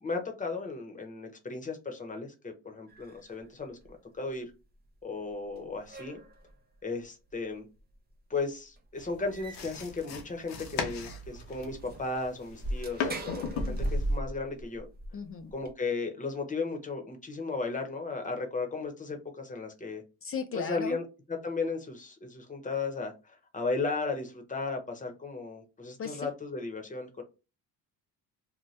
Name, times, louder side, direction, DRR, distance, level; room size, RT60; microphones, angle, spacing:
voice 1, 0.0-4.5 5.0-6.2 6.8-7.7 8.3-14.9 15.5-20.0 20.5-21.0 21.3-27.2, left 3 dB, 20° left, 0.8 m, -35 dB
sound 1, 2.9-3.4 3.8-3.9 5.3-5.4 5.6-6.5 7.3-7.4 7.8-7.9 8.4-8.5 8.7-8.8 9.3-9.9 10.4-10.5 10.6-10.7 11.3-15.7, right 1 dB, 25° right, 0.6 m, -37 dB
sound 2, 9.0-14.2, left 5 dB, 85° left, 0.8 m, -38 dB
voice 2, 15.1-15.5 20.2-21.0 26.0-26.3, left 6 dB, 35° left, 0.4 m, -36 dB
2.7 x 2.2 x 3.1 m
cardioid pair, 100°, 38 cm